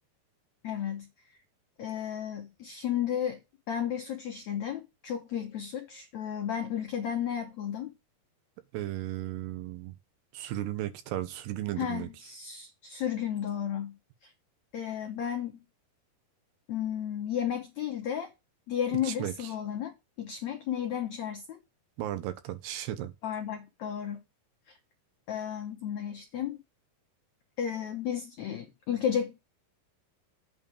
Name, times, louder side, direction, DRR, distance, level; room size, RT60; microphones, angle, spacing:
voice 1, 0.6-1.1 1.8-3.4 3.7-7.9 11.8-14.3 14.7-15.6 16.7-18.3 18.7-19.9 20.2-21.6 23.2-24.2 24.7-24.8 25.3-26.6 27.6-29.4, left 9 dB, 75° left, 1.6 m, -33 dB
voice 2, 8.7-9.9 10.3-12.1 18.9-19.5 22.0-23.1, right 13 dB, 80° right, 3.0 m, -35 dB
8.6 x 4.7 x 4.9 m
omnidirectional pair, 4.8 m